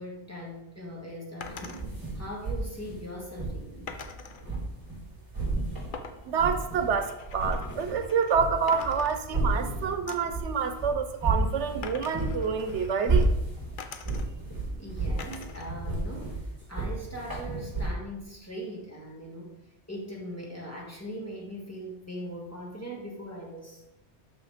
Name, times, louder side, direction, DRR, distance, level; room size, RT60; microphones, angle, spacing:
voice 1, 0.0-1.9 2.1-3.9 14.8-16.4 16.7-19.5 19.9-23.8, equal, 15° left, -3 dB, 1.7 m, -40 dB
sound 1, 1.4-1.8 3.9-4.4 5.9-8.4 8.7-9.6 10.1-10.4 11.8-13.3 13.8-14.5 15.2-15.7 16.1-16.9, left 5 dB, 55° left, 0.8 m, -44 dB
sound 2, 1.4-5.0 5.3-7.0 7.2-17.9, right 2 dB, 30° right, 3.5 m, -31 dB
voice 2, 6.2-13.3, right 6 dB, 85° right, 8 dB, 1.1 m, -28 dB
6.3 x 6.1 x 5.0 m, 0.87 s
omnidirectional pair, 1.2 m